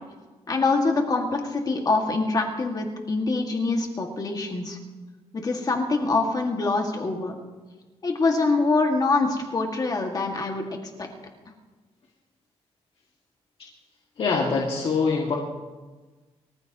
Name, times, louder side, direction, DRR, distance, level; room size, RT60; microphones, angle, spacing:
voice 1, 0.5-4.8 5.3-7.4 8.0-10.7 11.0-11.1, left 3 dB, 35° left, 2 dB, 2.0 m, -24 dB
voice 2, 14.2-15.3, left 4 dB, 55° left, -2 dB, 2.2 m, -24 dB
24.5 x 14.5 x 3.0 m, 1.3 s
cardioid pair, 120°, 11 cm